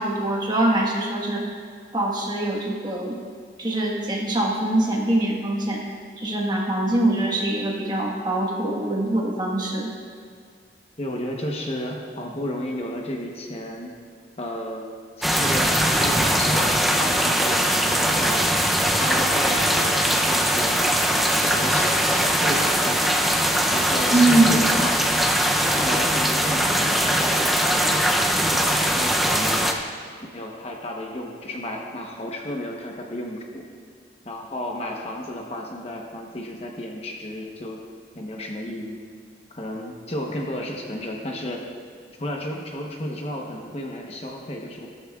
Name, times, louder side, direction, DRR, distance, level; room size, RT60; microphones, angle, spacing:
voice 1, 0.0-1.4 1.9-3.1 3.6-5.8 6.2-9.9 24.1-24.6, right 1 dB, 25° right, -2 dB, 1.4 m, -23 dB
voice 2, 11.0-13.9 14.4-14.8 15.2-18.5 19.0-20.7 21.4-23.1 23.7-25.1 25.8-28.1 28.5-29.9 30.3-33.6 34.2-37.8 38.1-39.0 39.5-41.6 42.2-44.9, left 1 dB, 35° left, 0 dB, 0.9 m, -32 dB
sound 1, 15.2-29.7, equal, ahead, 0.5 m, -21 dB
13.5 x 13.0 x 2.4 m, 2.1 s
head